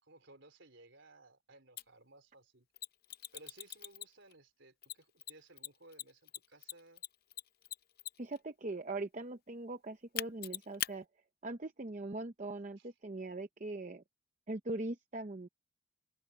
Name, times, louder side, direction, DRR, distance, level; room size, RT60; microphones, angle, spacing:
voice 1, 0.0-2.7 3.3-7.0 12.8-12.9, right 2 dB, 60° right, 4.5 m, -59 dB
Mechanisms, 1.8-1.9 2.8-4.3 4.8-8.4 10.2-10.9, left 12 dB, 45° left, 0.6 m, -41 dB
voice 2, 8.2-11.1 11.4-14.0 14.5-15.5, right 2 dB, 35° right, 0.7 m, -41 dB
open air
head